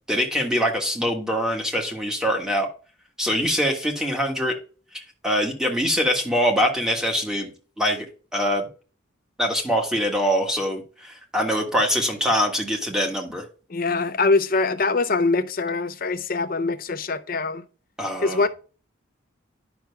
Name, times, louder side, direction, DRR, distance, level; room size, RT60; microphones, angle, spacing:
voice 1, 0.1-2.7 3.2-4.5 4.9-7.5 7.8-8.1 8.3-8.7 9.4-13.4 18.0-18.4, equal, 5° right, 1.4 m, -23 dB
voice 2, 13.7-17.6 18.2-18.5, left 3 dB, 45° left, 0.6 m, -23 dB
10.5 x 6.0 x 2.3 m
head